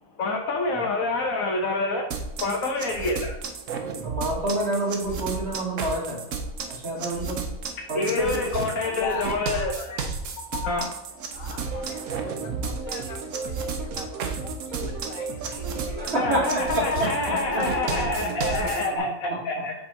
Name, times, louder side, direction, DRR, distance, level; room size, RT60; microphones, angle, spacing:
voice 1, 0.2-2.1 2.4-3.4 7.9-9.9 10.6-10.9 16.1-19.7, left 3 dB, 80° left, 2 dB, 1.4 m, -27 dB
Beat Loop, 2.1-18.9, right 5 dB, 70° right, 1.2 m, -33 dB
voice 2, 4.0-6.2 6.8-7.5 7.9-8.5 15.8-18.0 18.2-19.0, right 1 dB, 50° right, -4 dB, 2.4 m, -28 dB
voice 3, 8.8-10.1 11.3-16.2, left 5 dB, 60° left, 7 dB, 1.1 m, -40 dB
sound 1, 11.6-19.0, right 4 dB, 85° right, 1.3 m, -35 dB
7.5 x 3.8 x 4.2 m, 0.95 s
omnidirectional pair, 1.4 m